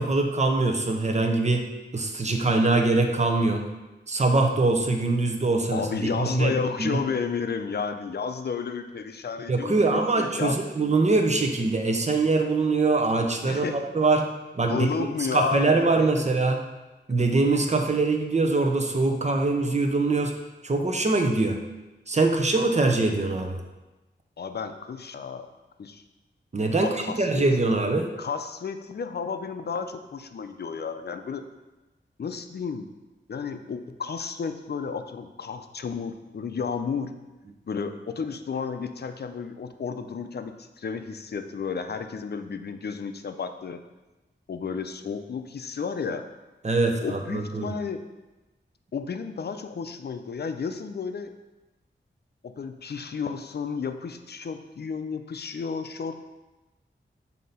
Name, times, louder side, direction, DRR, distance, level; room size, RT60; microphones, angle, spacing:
voice 1, 0.0-1.7 1.9-3.7 4.1-7.0 9.5-14.3 14.5-14.9 15.3-16.6 17.1-20.3 20.6-21.6 22.1-23.6 26.5-28.1 46.6-47.7, right 3 dB, 35° right, 4 dB, 0.7 m, -23 dB
voice 2, 5.7-10.6 13.4-13.8 14.6-16.3 24.4-25.5 25.8-26.0 26.8-27.4 28.2-31.4 32.2-32.9 33.3-37.1 37.6-43.8 44.5-46.2 47.0-48.0 48.9-51.3 52.4-56.2, left 5 dB, 55° left, 8 dB, 0.5 m, -32 dB
7.5 x 2.8 x 5.4 m, 1.1 s
wide cardioid pair, 105°, 20 cm